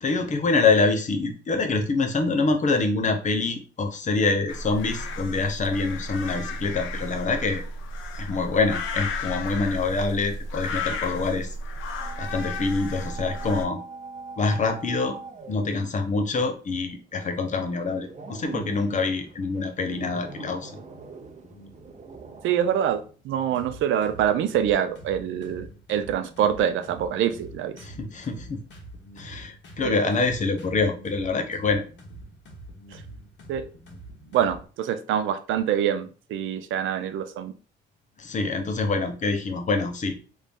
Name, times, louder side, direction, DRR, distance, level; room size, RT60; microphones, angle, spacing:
voice 1, 0.0-7.6 8.1-11.5 12.2-13.8 14.4-15.2 15.5-20.7 27.8-28.6 29.2-31.8 38.2-40.2, left 3 dB, 40° left, 6 dB, 0.7 m, -25 dB
sound 1, 4.5-13.6, left 2 dB, 85° left, 0.6 m, -33 dB
sound 2, 12.0-22.7, right 4 dB, 35° right, 0.7 m, -42 dB
sound 3, 20.7-34.6, right 1 dB, 65° left, 1.2 m, -46 dB
voice 2, 22.4-27.8 29.8-29.9 33.5-33.6 34.3-37.5, right 9 dB, 80° right, 10 dB, 0.5 m, -25 dB
3.2 x 2.6 x 3.4 m, 0.38 s
cardioid pair, 90°, 20 cm